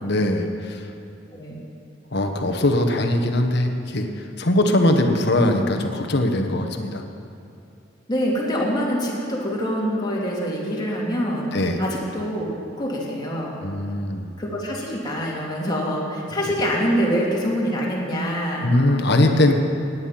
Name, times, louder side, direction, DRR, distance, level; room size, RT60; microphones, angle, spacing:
voice 1, 0.0-0.8 2.1-4.1 4.4-7.0 11.5-11.8 13.6-14.3 18.6-19.5, left 1 dB, 65° left, 4 dB, 1.2 m, -21 dB
voice 2, 8.1-11.5 11.8-12.5 12.8-13.6 14.4-18.7, equal, 25° left, -4 dB, 2.8 m, -25 dB
17.0 x 9.7 x 5.8 m, 2.6 s
head